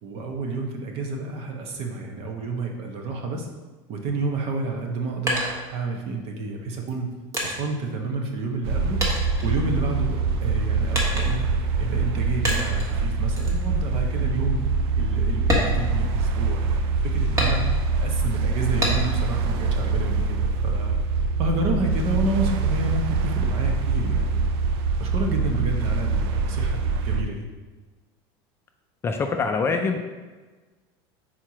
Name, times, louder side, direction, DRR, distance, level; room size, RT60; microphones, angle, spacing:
voice 1, 0.0-3.5 3.9-5.4 5.7-7.1 7.4-9.0 9.4-14.6 14.9-17.7 18.0-24.5 25.0-27.5, right 3 dB, 50° right, 2 dB, 1.1 m, -30 dB
sound 1, 4.8-6.2 6.9-8.7 9.0-10.2 10.9-11.6 12.5-12.9 13.4-13.6 14.1-14.2 14.6-14.8 15.4-16.6 17.4-18.0 18.8-19.3 19.7-20.6, equal, 25° right, 1.4 m, -28 dB
sound 2, 8.6-27.2, right 4 dB, 75° right, 0.5 m, -24 dB
voice 2, 29.0-30.0, left 4 dB, 20° left, 4 dB, 0.4 m, -24 dB
4.6 x 4.4 x 5.9 m, 1.3 s
supercardioid pair, 145°, 13 cm